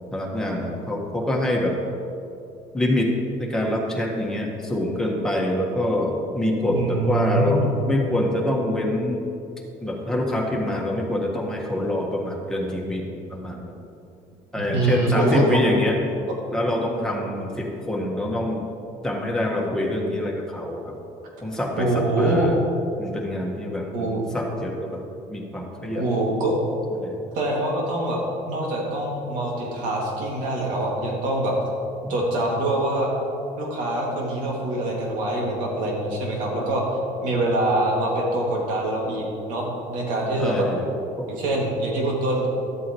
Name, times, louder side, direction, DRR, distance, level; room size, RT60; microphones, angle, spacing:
voice 1, 0.1-1.8 2.7-9.3 9.8-13.7 14.5-16.1 16.5-18.7 19.0-21.0 21.4-22.6 23.0-25.0 25.3-26.0 26.9-27.2 32.0-32.1 40.4-40.9 41.2-41.3, left 1 dB, 5° left, -2 dB, 1.5 m, -25 dB
voice 2, 6.7-7.8 14.7-15.6 21.8-22.5 23.9-24.2 25.9-26.5 27.3-28.2 28.5-31.5 32.1-33.1 33.6-36.8 37.2-40.7 41.3-42.5, right 2 dB, 80° right, -2 dB, 2.3 m, -24 dB
12.5 x 8.2 x 3.1 m, 2.7 s
cardioid pair, 115°, 13 cm